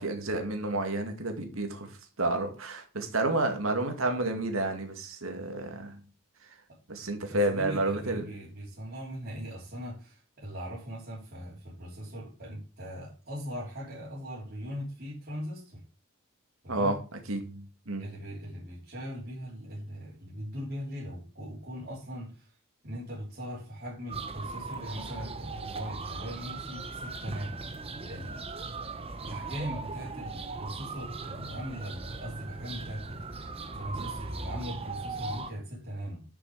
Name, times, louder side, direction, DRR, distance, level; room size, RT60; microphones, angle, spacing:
voice 1, 0.0-6.0 6.9-8.3 16.7-18.1, right 2 dB, 80° right, 5 dB, 2.2 m, -30 dB
voice 2, 7.3-15.8 16.6-16.9 18.0-22.6 22.8-27.6 28.1-28.5 29.2-33.2 33.7-36.2, equal, 50° right, -7 dB, 3.6 m, -40 dB
sound 1, 24.1-35.5, right 3 dB, 25° right, 0.9 m, -39 dB
9.8 x 6.5 x 4.9 m, 0.35 s
head